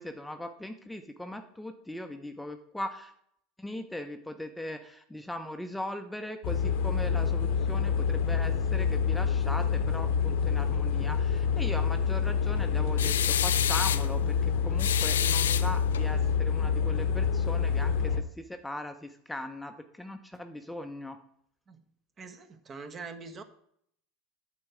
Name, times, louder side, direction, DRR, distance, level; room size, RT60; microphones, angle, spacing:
voice 1, 0.0-3.1 3.6-21.2, left 1 dB, 5° left, 7 dB, 0.7 m, -39 dB
sound 1, 6.4-18.2, left 6 dB, 70° left, 1.0 m, -27 dB
sound 2, 13.0-14.1 14.8-16.1, left 10 dB, 90° left, 0.3 m, -28 dB
voice 2, 22.2-23.4, right 4 dB, 30° right, 8 dB, 1.1 m, -43 dB
8.6 x 4.7 x 7.5 m, 0.69 s
hypercardioid pair, 95°, 0 cm